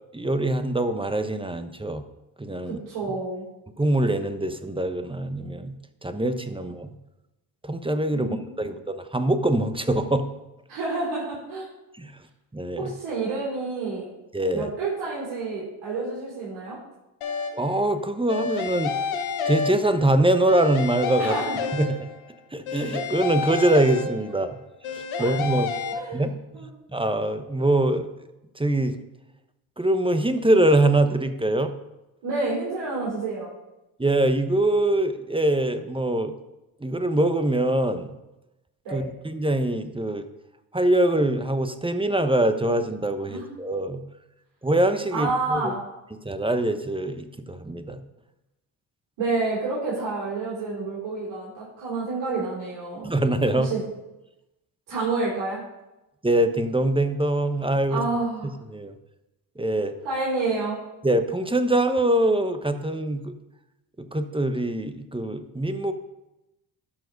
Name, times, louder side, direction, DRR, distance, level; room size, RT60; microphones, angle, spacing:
voice 1, 0.1-2.0 2.4-2.8 3.8-5.8 6.0-6.9 7.6-8.3 8.6-10.3 12.0-12.1 12.5-12.9 14.3-14.7 17.5-18.9 19.4-21.3 21.7-22.0 22.5-24.6 24.9-25.7 26.1-26.4 26.9-28.1 28.6-29.0 29.8-31.7 34.0-36.3 36.8-38.1 38.9-40.3 40.7-44.0 44.6-45.7 46.2-48.0 53.0-53.7 56.2-58.0 58.7-58.9 59.6-60.0 61.0-63.3 64.0-65.9, right 1 dB, 10° right, 9 dB, 1.0 m, -23 dB
voice 2, 2.6-3.5 8.1-8.7 10.7-11.7 12.8-14.1 14.5-16.8 21.2-21.6 25.2-26.2 26.5-26.8 32.2-33.5 38.8-39.1 43.3-43.5 45.1-45.8 49.2-53.1 53.6-53.8 54.9-55.6 57.9-58.6 60.0-60.8, right 3 dB, 80° right, -7 dB, 3.6 m, -29 dB
sound 1, 17.2-17.8 18.3-20.2 20.5-22.3 22.7-24.5 24.8-25.9, left 5 dB, 80° left, 1.3 m, -30 dB
12.5 x 4.7 x 5.3 m, 0.97 s
supercardioid pair, 55°, 48 cm